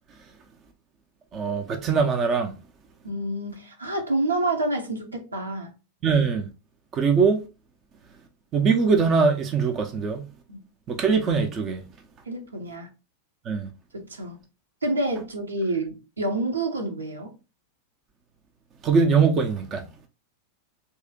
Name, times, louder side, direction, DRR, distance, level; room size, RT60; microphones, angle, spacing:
voice 1, 1.3-2.5 6.0-6.5 6.9-7.5 8.5-10.3 10.9-11.8 13.5-13.7 18.8-19.8, right 5 dB, 30° right, 0.6 m, -22 dB
voice 2, 3.0-5.8 10.5-10.6 12.3-12.9 13.9-14.4 14.8-17.3, right 2 dB, 75° right, 0.9 m, -28 dB
3.1 x 2.9 x 3.6 m
figure-of-eight pair, 90°, 0 cm